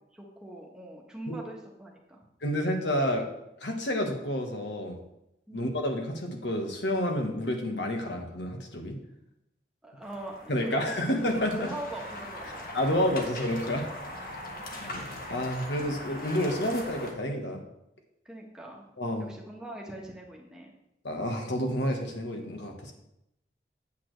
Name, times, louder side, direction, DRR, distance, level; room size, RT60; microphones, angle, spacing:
voice 1, 0.1-2.2 5.5-5.7 9.8-11.1 11.5-13.3 14.1-14.7 18.2-18.8 19.2-20.7, right 1 dB, 5° right, -2 dB, 1.2 m, -42 dB
voice 2, 2.4-3.2 3.6-5.0 5.5-9.0 10.5-11.7 12.7-13.9 14.7-15.0 15.3-17.6 19.0-19.3 21.0-22.9, left 1 dB, 85° left, 3 dB, 1.4 m, -29 dB
sound 1, 10.0-17.1, left 1 dB, 50° left, 1.4 m, -41 dB
8.5 x 8.5 x 3.3 m, 0.83 s
head